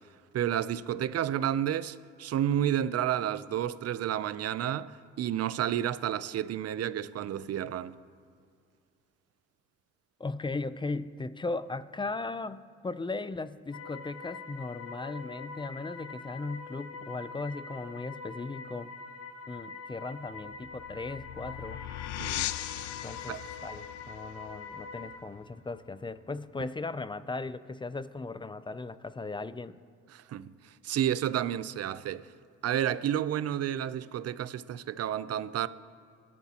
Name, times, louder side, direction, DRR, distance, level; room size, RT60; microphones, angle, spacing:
voice 1, 0.3-8.0 22.2-22.5 23.3-23.4 30.1-30.5 30.8-32.3 32.6-35.7, right 10 dB, 55° right, 0.6 m, -31 dB
voice 2, 10.2-18.9 19.5-21.8 23.0-29.8, left 3 dB, 15° left, 0.5 m, -37 dB
sound 1, 13.7-25.2, left 4 dB, 50° left, 1.3 m, -44 dB
sound 2, 20.4-25.8, left 14 dB, 75° left, 0.5 m, -39 dB
24.5 x 12.0 x 2.9 m
cardioid pair, 90°, 30 cm